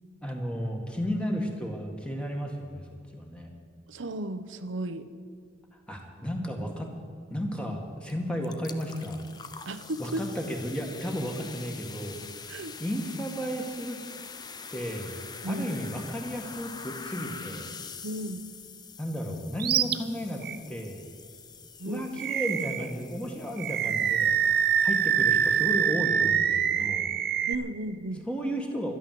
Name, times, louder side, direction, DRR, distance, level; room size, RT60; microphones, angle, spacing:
voice 1, 0.2-2.9 3.1-3.5 5.9-6.9 7.3-9.2 10.0-12.2 12.8-14.0 14.7-15.2 15.4-17.7 19.0-21.0 21.8-24.4 24.8-27.1 28.3-29.0, equal, 5° left, 1 dB, 1.9 m, -33 dB
voice 2, 3.9-5.1 9.7-10.2 12.5-12.7 15.4-15.7 18.0-18.5 21.8-22.0 27.5-28.2, right 1 dB, 85° right, 10 dB, 0.8 m, -34 dB
sound 1, 8.1-8.2 8.4-26.2, left 5 dB, 20° left, 0.6 m, -45 dB
Animal, 19.6-20.0 20.4-20.6 22.2-22.9 23.6-27.5, right 8 dB, 50° right, 0.6 m, -25 dB
12.5 x 12.0 x 7.6 m, 2.3 s
head